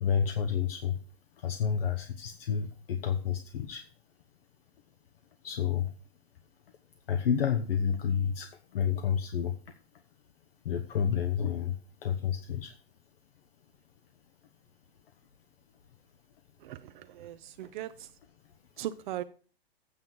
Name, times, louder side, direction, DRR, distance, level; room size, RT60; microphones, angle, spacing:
voice 1, 0.0-1.0 1.4-3.8 5.4-5.9 7.1-9.6 10.6-12.7, left 8 dB, 65° left, 6 dB, 1.2 m, -30 dB
voice 2, 16.6-17.9 18.8-19.2, right 12 dB, 50° right, 10 dB, 0.7 m, -38 dB
8.8 x 5.8 x 7.8 m, 0.40 s
hypercardioid pair, 115°, 31 cm